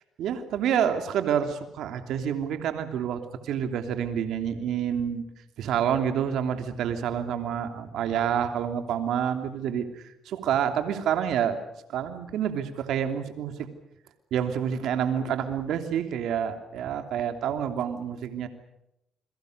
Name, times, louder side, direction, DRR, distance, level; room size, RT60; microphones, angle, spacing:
voice 1, 0.2-5.2 5.6-11.6 11.9-13.7 14.3-18.5, right 8 dB, 80° right, 7 dB, 3.0 m, -28 dB
29.5 x 22.5 x 6.7 m, 0.80 s
cardioid pair, 90°, 0 cm